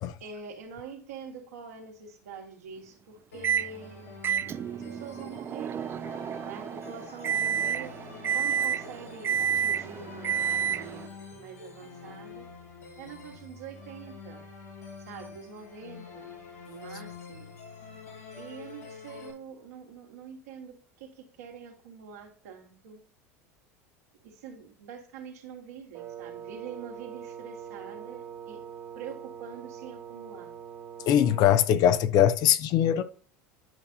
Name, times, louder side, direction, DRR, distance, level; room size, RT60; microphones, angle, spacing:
voice 1, 0.2-4.2 4.7-5.9 6.4-7.9 8.3-12.5 13.0-14.5 15.1-16.3 16.7-17.6 18.4-23.0 24.2-28.6 29.0-30.6, right 6 dB, 75° right, 1.8 m, -45 dB
sound 1, 3.3-19.3, left 4 dB, 85° left, 2.7 m, -46 dB
Microwave oven, 3.4-3.7 4.2-11.1, right 8 dB, 30° right, 0.3 m, -30 dB
Wind instrument woodwind instrument, 25.9-31.7, right 8 dB, 45° right, 1.3 m, -43 dB
voice 2, 31.1-33.0, left 10 dB, 55° left, 0.7 m, -21 dB
10.5 x 5.5 x 2.7 m
hypercardioid pair, 80°, 8 cm